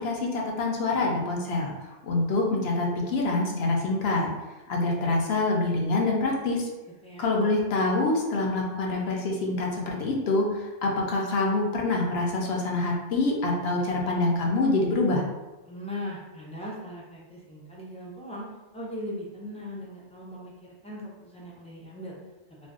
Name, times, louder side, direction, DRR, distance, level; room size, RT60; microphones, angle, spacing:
voice 1, 0.0-1.7 2.0-4.3 4.7-6.7 7.2-15.2, left 2 dB, 65° left, -1 dB, 0.8 m, -26 dB
voice 2, 15.6-18.4 18.7-22.2, left 1 dB, 10° left, -5 dB, 0.3 m, -39 dB
2.5 x 2.2 x 3.5 m, 1.1 s
omnidirectional pair, 1.2 m